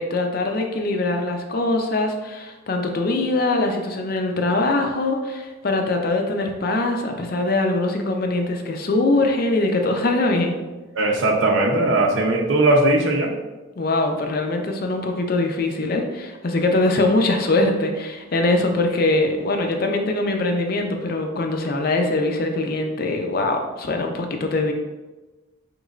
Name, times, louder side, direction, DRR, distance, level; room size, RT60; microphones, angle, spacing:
voice 1, 0.0-10.6 13.8-24.7, left 2 dB, 50° left, 3 dB, 0.4 m, -22 dB
voice 2, 10.9-13.3, right 2 dB, 75° right, 2 dB, 0.7 m, -19 dB
5.1 x 3.1 x 2.4 m, 1.2 s
head